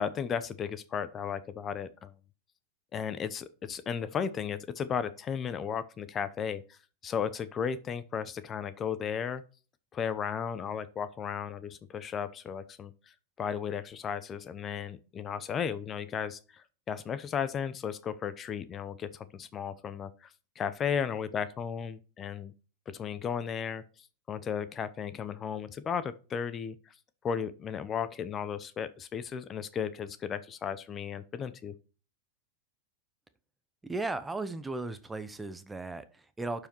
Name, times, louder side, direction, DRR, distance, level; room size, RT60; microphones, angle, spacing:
voice 1, 0.0-2.1 2.9-6.8 7.0-9.4 9.9-12.9 13.4-22.5 22.9-26.9 27.2-31.8, left 7 dB, 25° left, 0.7 m, -35 dB
voice 2, 33.8-36.7, right 2 dB, 10° right, 0.7 m, -36 dB
11.5 x 4.9 x 4.6 m
hypercardioid pair, 120°, 0 cm